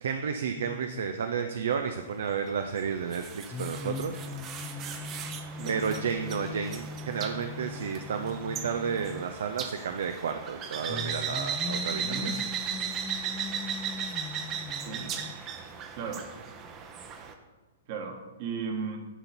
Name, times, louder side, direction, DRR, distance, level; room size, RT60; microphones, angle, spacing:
voice 1, 0.0-4.2 5.7-12.3, right 6 dB, 60° right, 7 dB, 0.5 m, -32 dB
sound 1, 0.6-1.5 3.5-9.5 10.9-15.3, left 5 dB, 15° left, 0.4 m, -40 dB
sound 2, 2.5-17.3, right 7 dB, 30° right, 0.7 m, -37 dB
voice 2, 12.0-12.4 14.8-15.1 15.9-16.2 17.9-19.0, right 5 dB, 45° right, 3 dB, 1.5 m, -36 dB
11.0 x 3.9 x 4.4 m, 1.2 s
figure-of-eight pair, 110°, 0 cm